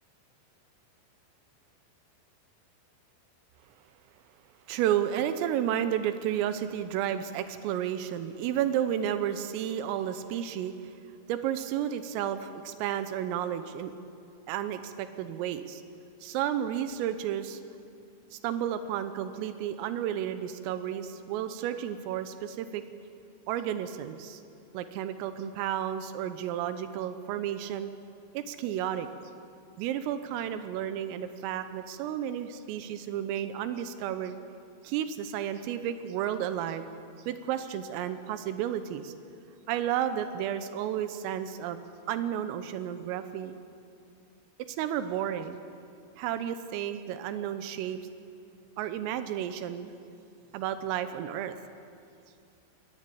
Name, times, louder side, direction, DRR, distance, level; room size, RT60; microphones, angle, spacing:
voice 1, 4.7-10.9 11.3-13.9 14.5-15.8 16.2-17.6 18.3-22.8 23.5-24.4 24.7-27.9 28.4-29.1 29.8-34.4 34.8-36.9 37.3-39.1 39.7-43.5 44.7-45.6 46.2-48.0 48.8-49.9 50.5-51.6, right 10 dB, 90° right, 10 dB, 3.6 m, -32 dB
22.5 x 18.5 x 8.5 m, 2.5 s
omnidirectional pair, 5.8 m